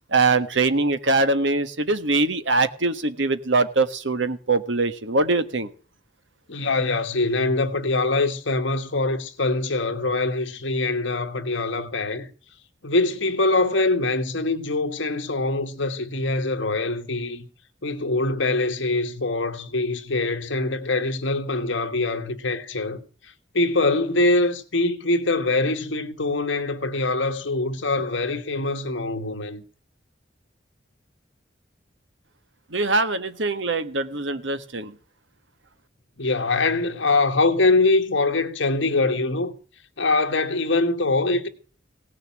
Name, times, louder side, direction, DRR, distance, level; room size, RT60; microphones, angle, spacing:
voice 1, 0.1-5.7 32.7-34.9, right 3 dB, 75° right, 1.5 m, -22 dB
voice 2, 6.5-12.3 12.8-17.5 17.8-23.0 23.5-29.6 36.2-39.5 40.0-41.5, left 2 dB, 80° left, 1.7 m, -23 dB
17.5 x 6.6 x 8.8 m
head